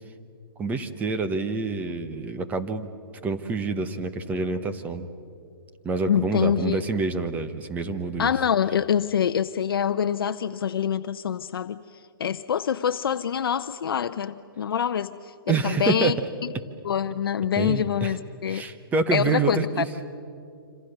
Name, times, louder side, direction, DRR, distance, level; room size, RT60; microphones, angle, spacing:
voice 1, 0.6-2.9 3.2-5.1 5.8-8.3 15.5-16.1 17.6-18.2 18.5-19.9, right 4 dB, 10° right, 9 dB, 1.0 m, -27 dB
voice 2, 6.1-6.8 8.2-16.2 16.8-18.6 19.1-19.8, left 8 dB, 75° left, 10 dB, 0.7 m, -25 dB
26.5 x 26.0 x 6.7 m, 2.6 s
hypercardioid pair, 150°, 12 cm